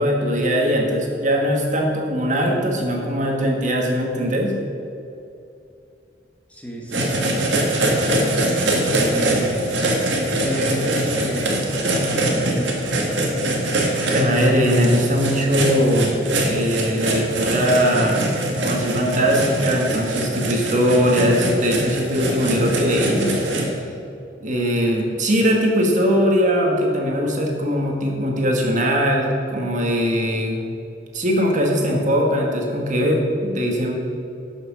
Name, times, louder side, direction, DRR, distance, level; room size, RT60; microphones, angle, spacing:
voice 1, 0.0-4.5 14.1-18.2 18.6-23.7 24.4-30.6 31.1-33.9, equal, 45° right, 0 dB, 1.7 m, -20 dB
voice 2, 6.5-8.3 8.9-9.6 10.4-13.1, right 1 dB, 5° left, -2 dB, 1.5 m, -32 dB
sound 1, 6.9-23.6, right 1 dB, 80° right, 1.9 m, -23 dB
12.0 x 6.4 x 6.3 m, 2.6 s
head